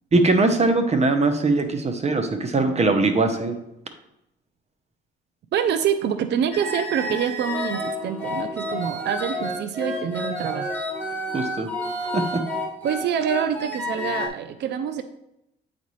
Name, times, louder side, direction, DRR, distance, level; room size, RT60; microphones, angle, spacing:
voice 1, 0.1-3.6 11.3-11.7 12.0-12.4, right 3 dB, 35° right, 7 dB, 0.9 m, -21 dB
voice 2, 5.5-10.7 12.8-15.0, right 8 dB, 60° right, 10 dB, 0.5 m, -26 dB
sound 1, 6.5-14.3, left 1 dB, 10° left, 1.8 m, -30 dB
8.1 x 4.2 x 3.1 m, 0.84 s
cardioid pair, 90°, 20 cm